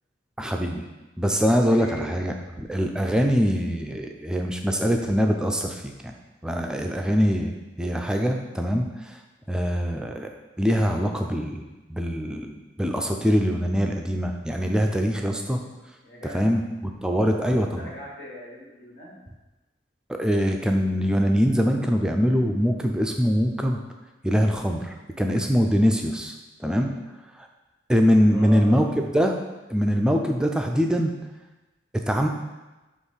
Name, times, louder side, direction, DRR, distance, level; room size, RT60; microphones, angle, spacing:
voice 1, 0.4-0.8 1.2-6.1 6.4-9.1 9.5-10.3 10.6-15.6 16.3-17.9 20.1-23.8 24.2-26.3 26.6-26.9 27.9-28.9 29.1-29.3 29.7-31.1 32.1-32.3, equal, 5° right, 3 dB, 0.4 m, -23 dB
voice 2, 1.6-2.1 3.9-4.0 4.4-4.6 16.0-16.5 17.0-19.2 28.2-28.8, equal, 75° left, -5 dB, 2.2 m, -40 dB
6.3 x 3.1 x 5.6 m, 1.1 s
head